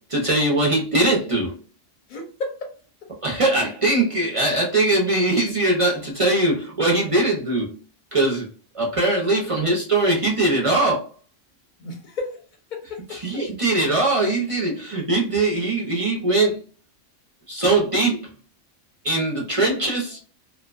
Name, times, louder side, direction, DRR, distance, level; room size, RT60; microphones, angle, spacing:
voice 1, 0.1-1.5 3.2-7.8 8.1-8.5 8.7-11.1 13.1-16.6 17.5-18.3 19.0-20.2, right 2 dB, 40° right, -3 dB, 0.5 m, -21 dB
voice 2, 2.1-2.7 3.0-3.1 11.8-12.4 12.7-13.4, left 2 dB, 45° left, 1 dB, 0.8 m, -33 dB
2.5 x 2.1 x 2.3 m, 0.38 s
omnidirectional pair, 1.3 m